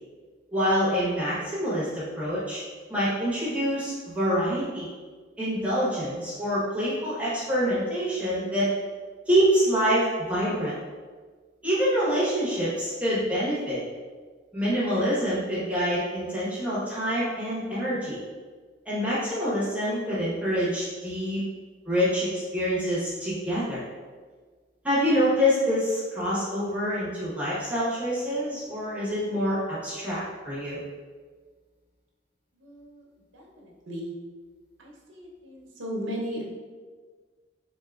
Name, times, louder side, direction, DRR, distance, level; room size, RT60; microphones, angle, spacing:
voice 1, 0.5-2.6 2.9-4.9 5.4-8.7 9.3-10.7 11.6-13.8 14.5-18.2 18.9-21.4 21.9-23.8 24.8-30.8, equal, 5° right, -9 dB, 1.1 m, -26 dB
voice 2, 32.6-33.0 33.3-34.1 34.8-36.6, equal, 85° right, -2 dB, 0.8 m, -36 dB
3.8 x 3.7 x 2.4 m, 1.5 s
head